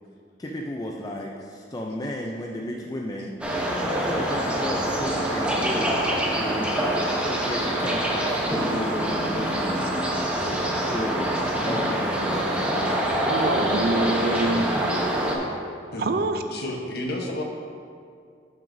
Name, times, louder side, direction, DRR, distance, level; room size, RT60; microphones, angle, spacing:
voice 1, 0.4-3.3 3.9-6.0 6.3-9.9 10.7-11.4 11.6-13.0, left 1 dB, 20° left, 0 dB, 0.4 m, -33 dB
sound 1, 3.4-15.4, right 1 dB, 5° right, 0.8 m, -25 dB
voice 2, 10.4-10.9 13.3-14.6 16.0-16.4, right 2 dB, 55° right, 7 dB, 0.4 m, -26 dB
voice 3, 16.5-17.4, left 1 dB, 55° left, 1 dB, 1.0 m, -32 dB
12.0 x 6.0 x 2.6 m, 2.3 s
head